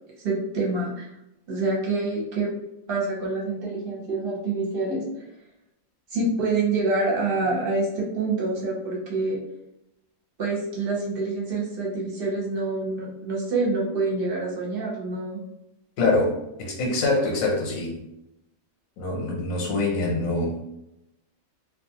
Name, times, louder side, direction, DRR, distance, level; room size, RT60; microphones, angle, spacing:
voice 1, 0.2-1.0 1.5-2.5 2.9-5.0 6.1-9.4 10.4-15.4, right 3 dB, 50° right, -3 dB, 0.9 m, -26 dB
voice 2, 16.0-18.0 19.0-20.6, left 2 dB, 75° left, -1 dB, 1.1 m, -25 dB
2.4 x 2.3 x 2.7 m, 0.86 s
omnidirectional pair, 1.4 m